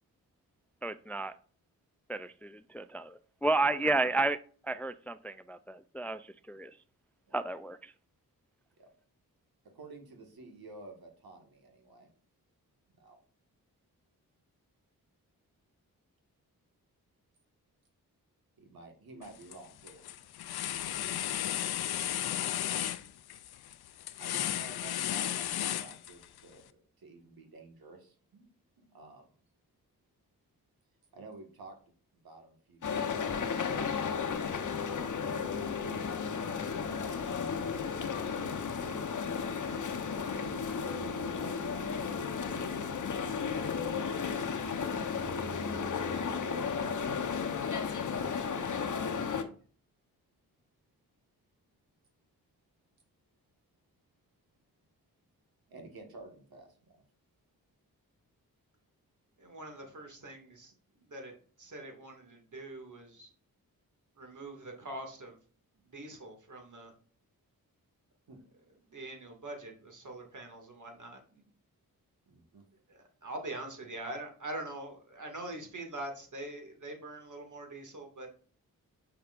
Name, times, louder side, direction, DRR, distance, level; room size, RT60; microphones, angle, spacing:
voice 1, 0.8-1.3 2.1-4.4 4.7-6.2 6.5-6.7 7.3-7.8, right 2 dB, 5° left, 13 dB, 0.3 m, -32 dB
voice 2, 3.6-4.1 7.3-7.4 8.8-8.9 9.7-12.1 12.9-13.2 18.6-20.0 20.9-21.1 24.2-28.5 28.8-29.3 31.1-31.7 32.2-33.6 35.2-36.0 36.4-42.2 44.8-47.3 48.1-49.6 55.7-57.0 68.3-68.4 72.3-72.6, right 2 dB, 75° right, 3 dB, 1.7 m, -52 dB
sound 1, 19.2-19.6 19.9-26.4, left 12 dB, 85° left, 0.5 m, -34 dB
sound 2, 32.8-49.4, left 6 dB, 55° left, 0.9 m, -34 dB
voice 3, 59.4-63.3 64.2-65.4 65.8-66.9 68.9-71.4 72.9-78.3, right 2 dB, 55° right, 3 dB, 2.2 m, -44 dB
6.7 x 5.8 x 2.5 m, 0.43 s
cardioid pair, 45°, 37 cm